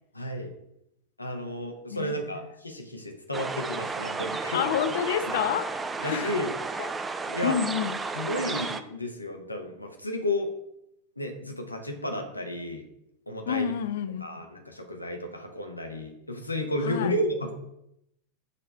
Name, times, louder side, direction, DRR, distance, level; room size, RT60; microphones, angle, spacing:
voice 1, 0.1-0.5 1.2-4.7 6.0-6.5 7.3-7.6 8.1-10.5 11.2-12.8 13.3-13.7 14.2-17.5, left 1 dB, 85° left, 0.9 m, -32 dB
voice 2, 1.9-2.4 4.5-6.3 6.8-6.9 7.4-8.0 13.5-14.2 16.8-17.2, left 9 dB, 55° left, 0.5 m, -29 dB
sound 1, 3.3-8.8, right 4 dB, 15° right, 0.4 m, -33 dB
6.6 x 3.3 x 4.2 m
figure-of-eight pair, 90°, 0 cm